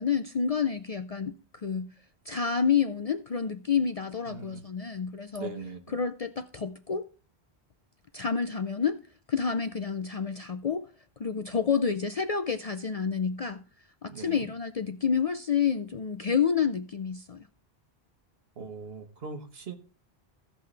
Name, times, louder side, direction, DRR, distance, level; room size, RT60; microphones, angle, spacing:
voice 1, 0.0-1.9 2.3-5.5 5.9-7.1 8.1-9.0 9.3-10.9 11.2-13.6 14.0-17.5, left 6 dB, 50° left, 0.5 m, -29 dB
voice 2, 4.2-4.6 5.4-5.9 14.1-14.5 18.6-19.7, right 4 dB, 65° right, 1.5 m, -40 dB
16.0 x 5.7 x 3.3 m
omnidirectional pair, 1.1 m